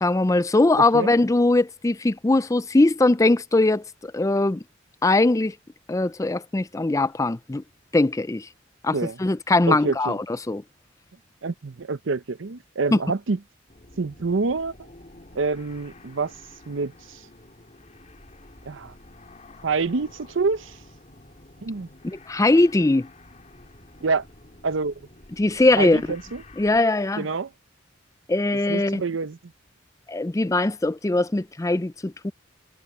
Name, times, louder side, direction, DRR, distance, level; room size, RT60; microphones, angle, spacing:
voice 1, 0.0-4.6 5.0-5.5 5.9-7.6 7.9-8.5 8.8-10.2 10.5-10.6 12.9-13.0 22.0-23.1 25.4-26.0 26.6-27.2 28.3-29.0 30.1-32.3, left 2 dB, 15° left, 0.4 m, -21 dB
voice 2, 9.7-10.2 11.4-13.4 14.0-14.7 15.3-16.3 16.7-17.2 18.7-18.9 19.6-20.8 21.6-21.9 24.0-24.2 24.6-24.9 25.8-26.4 27.2-27.5 28.7-29.4, right 4 dB, 70° right, 0.7 m, -27 dB
sound 1, 13.7-26.8, left 2 dB, 35° left, 2.7 m, -49 dB
head